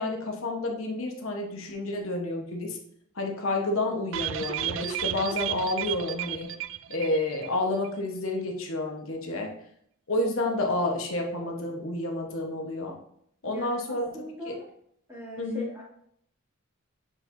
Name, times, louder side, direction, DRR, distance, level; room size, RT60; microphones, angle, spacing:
voice 1, 0.0-2.8 3.2-6.5 6.9-9.5 10.1-13.0 13.4-14.1 14.5-14.6 15.4-15.7, left 2 dB, 65° left, 1 dB, 1.1 m, -30 dB
sound 1, 4.1-7.6 7.8-7.9 8.3-8.4, right 11 dB, 60° right, 0.3 m, -33 dB
voice 2, 13.5-14.7 15.1-15.8, left 1 dB, 10° right, -6 dB, 2.3 m, -40 dB
7.8 x 4.6 x 2.7 m, 0.70 s
head